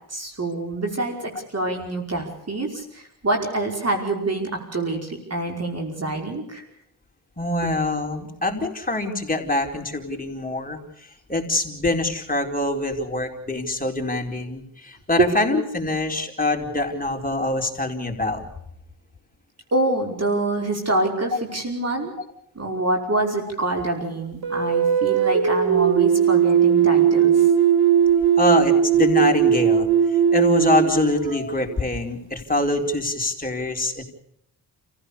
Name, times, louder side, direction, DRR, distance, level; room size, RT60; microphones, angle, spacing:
voice 1, 0.1-6.6 15.3-15.5 19.7-22.1 22.6-27.5, right 2 dB, 40° right, 2 dB, 5.3 m, -26 dB
voice 2, 7.4-18.4 28.4-34.0, left 2 dB, 20° left, 2 dB, 4.6 m, -24 dB
sound 1, 24.4-31.8, right 8 dB, 70° right, 2.2 m, -18 dB
29.5 x 16.0 x 7.0 m, 0.74 s
cardioid pair, 75°, 38 cm